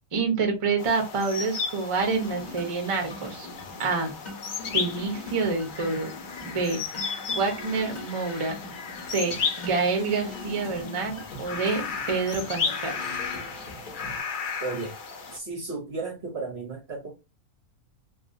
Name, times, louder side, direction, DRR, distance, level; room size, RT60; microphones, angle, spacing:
voice 1, 0.1-3.5 3.8-4.1 4.7-6.1 6.4-6.8 7.3-8.6 9.1-11.8 12.1-13.0, right 4 dB, 30° right, 0.6 m, -27 dB
sound 1, 0.8-15.4, left 5 dB, 70° left, 0.4 m, -34 dB
sound 2, 2.0-14.2, left 2 dB, 35° left, 0.9 m, -43 dB
voice 2, 14.6-14.9 15.3-17.1, right 3 dB, 55° right, 0.9 m, -34 dB
2.7 x 2.6 x 2.5 m
omnidirectional pair, 1.5 m